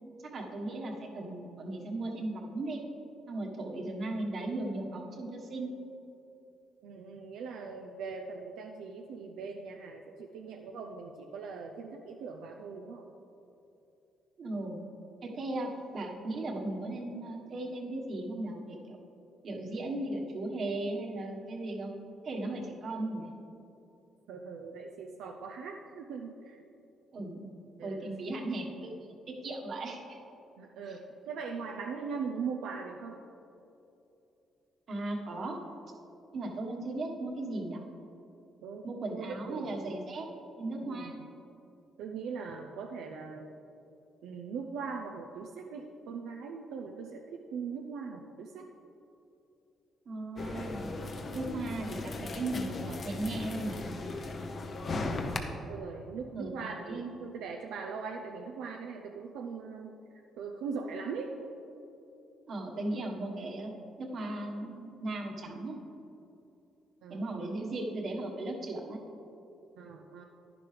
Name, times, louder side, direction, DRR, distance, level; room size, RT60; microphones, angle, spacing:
voice 1, 0.3-2.8 3.3-5.7 14.4-14.8 15.2-19.0 19.4-21.9 22.2-23.3 27.1-27.5 27.8-28.9 29.3-30.2 34.9-35.6 36.3-37.8 38.8-40.3 40.6-41.2 50.0-50.9 51.3-53.8 56.3-57.1 62.5-63.7 64.0-65.8 67.1-69.0, right 2 dB, 55° right, 1 dB, 1.5 m, -36 dB
voice 2, 6.8-13.0 24.3-26.6 27.2-27.3 27.8-28.1 30.6-33.2 38.6-38.8 39.1-39.8 40.8-41.1 42.0-43.5 44.2-48.7 54.9-55.2 55.7-60.0 60.4-61.3 67.0-67.3 69.8-70.2, right 5 dB, 90° right, 1 dB, 0.6 m, -40 dB
sound 1, 50.4-55.4, left 3 dB, 45° left, 0.9 m, -37 dB
10.5 x 10.5 x 3.4 m, 2.9 s
cardioid pair, 90°, 0 cm